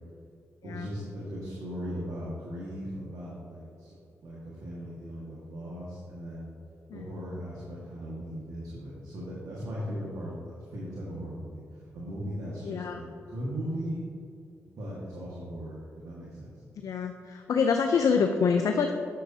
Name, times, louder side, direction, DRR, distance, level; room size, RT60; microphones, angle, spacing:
voice 1, 0.6-3.9 4.2-6.5 6.9-14.0 14.5-16.5, equal, 70° right, -7 dB, 1.6 m, -38 dB
voice 2, 12.6-13.0 16.8-18.9, left 5 dB, 65° left, 5 dB, 0.4 m, -26 dB
9.0 x 6.7 x 2.7 m, 2.6 s
supercardioid pair, 45°, 6 cm